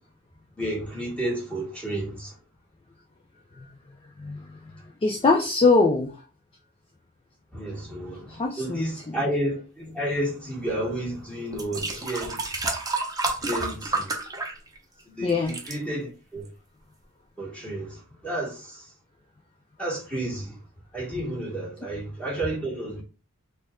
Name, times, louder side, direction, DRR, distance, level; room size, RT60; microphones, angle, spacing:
voice 1, 0.6-2.3 7.5-12.4 13.4-14.1 15.1-16.5 17.4-18.8 19.8-20.6 20.9-23.0, right 1 dB, 5° left, 1.6 m, -31 dB
voice 2, 4.2-4.6 5.0-6.1 8.3-9.2 15.2-15.6, left 3 dB, 25° left, 0.4 m, -22 dB
sound 1, 10.9-11.0 11.5-15.0 15.3-15.8 16.5-16.6, right 3 dB, 15° right, 0.8 m, -30 dB
4.2 x 2.4 x 3.6 m
head